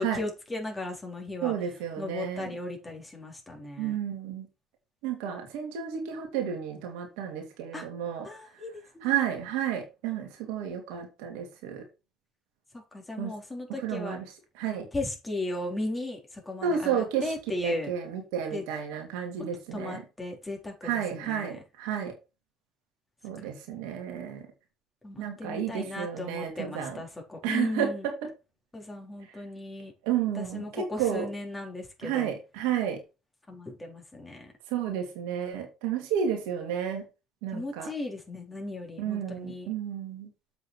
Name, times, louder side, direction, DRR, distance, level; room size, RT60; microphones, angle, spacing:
voice 1, 0.0-1.5 2.0-4.0 7.7-7.9 8.2-9.2 12.7-14.2 14.9-17.9 18.5-18.6 19.7-21.6 25.0-28.0 28.7-29.9 30.4-32.3 33.5-34.5 37.5-39.7, left 2 dB, 15° left, 4.2 m, -36 dB
voice 2, 1.4-2.5 3.8-4.5 5.0-8.3 9.0-11.8 13.2-13.3 13.8-14.2 14.5-14.9 16.6-20.0 20.8-22.1 23.2-24.5 25.2-27.0 27.4-28.1 30.0-31.3 32.0-33.0 34.7-37.0 37.4-37.9 39.0-40.3, right 8 dB, 70° right, 2.6 m, -31 dB
7.7 x 6.1 x 4.6 m
hypercardioid pair, 60°, 0 cm